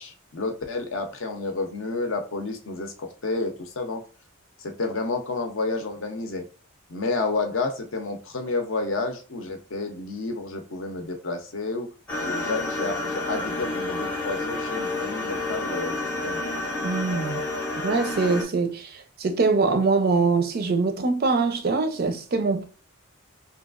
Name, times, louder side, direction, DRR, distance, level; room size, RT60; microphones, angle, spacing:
voice 1, 0.0-4.0 4.6-6.5 6.9-11.9 12.2-16.4, left 3 dB, 60° left, 0.5 m, -30 dB
sound 1, 12.1-18.5, left 2 dB, 10° left, 0.5 m, -29 dB
voice 2, 16.8-17.4 17.8-22.6, right 4 dB, 45° right, 0.4 m, -23 dB
2.8 x 2.3 x 2.4 m
head